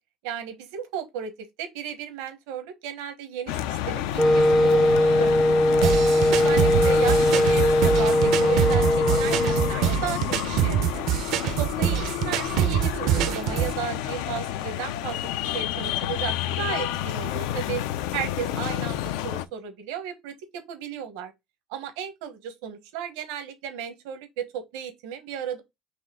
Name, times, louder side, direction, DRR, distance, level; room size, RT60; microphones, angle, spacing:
voice 1, 0.2-1.3 1.6-5.9 6.3-11.1 11.6-17.8 18.1-21.3 21.7-25.6, right 8 dB, 90° right, 1.0 m, -34 dB
sound 1, 3.5-19.5, left 12 dB, 85° left, 0.4 m, -30 dB
Wind instrument woodwind instrument, 4.2-9.8, left 1 dB, 5° left, 0.3 m, -20 dB
sound 2, 5.8-13.8, right 11 dB, 60° right, 0.4 m, -25 dB
4.2 x 3.0 x 3.5 m
cardioid pair, 135°, 0 cm